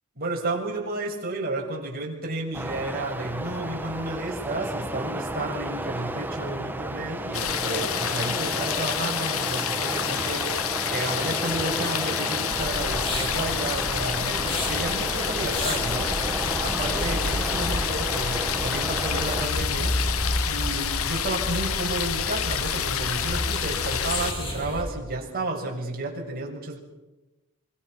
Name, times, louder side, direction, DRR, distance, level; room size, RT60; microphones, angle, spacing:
voice 1, 0.1-20.0 20.5-26.8, right 2 dB, 45° right, 0 dB, 6.6 m, -32 dB
sound 1, 2.5-19.5, right 1 dB, 10° right, 1.1 m, -33 dB
sound 2, 7.3-24.3, left 10 dB, 65° left, 1.0 m, -29 dB
sound 3, 12.5-24.8, equal, 25° left, 6.1 m, -31 dB
27.5 x 25.0 x 6.2 m, 1.0 s
head